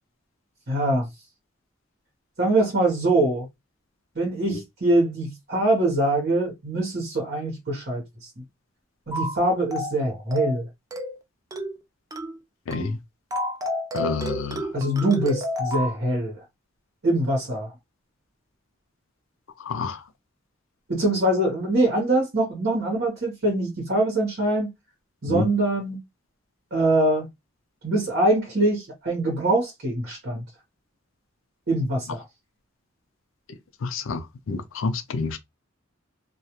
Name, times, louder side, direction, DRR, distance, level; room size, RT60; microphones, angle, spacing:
voice 1, 0.7-1.1 2.4-3.5 4.1-8.3 9.1-10.7 14.7-16.4 17.0-17.7 20.9-24.7 25.2-26.0 26.7-27.3 27.8-30.4 31.7-32.2, right 1 dB, 50° right, 0.9 m, -23 dB
sound 1, 9.1-9.4 9.7-10.0 10.3-10.6 10.9-11.2 11.5-11.8 12.1-12.4 12.7-12.9 13.3-16.0, left 1 dB, 15° right, 0.4 m, -30 dB
voice 2, 13.9-14.6 19.7-20.0 25.3-25.5 33.8-34.2 34.5-35.4, left 4 dB, 70° left, 0.4 m, -28 dB
2.3 x 2.1 x 2.9 m
head